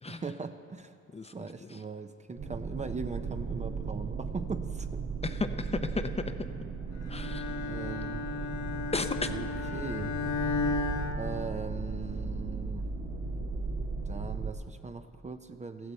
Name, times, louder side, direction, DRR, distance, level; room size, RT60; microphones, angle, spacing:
voice 1, 0.1-1.0 1.2-5.0 7.0-7.3 7.7-8.3 9.3-10.2 11.2-12.9 14.1-15.9, right 4 dB, 25° right, 8 dB, 0.6 m, -40 dB
sound 1, 2.4-14.5, right 4 dB, 75° right, 1.5 m, -36 dB
voice 2, 5.2-6.5 7.1-7.5 8.9-9.3, left 3 dB, 20° left, 8 dB, 0.6 m, -33 dB
Bowed string instrument, 7.1-12.1, left 4 dB, 65° left, 1.1 m, -34 dB
15.0 x 14.5 x 4.3 m, 2.5 s
cardioid pair, 90°, 30 cm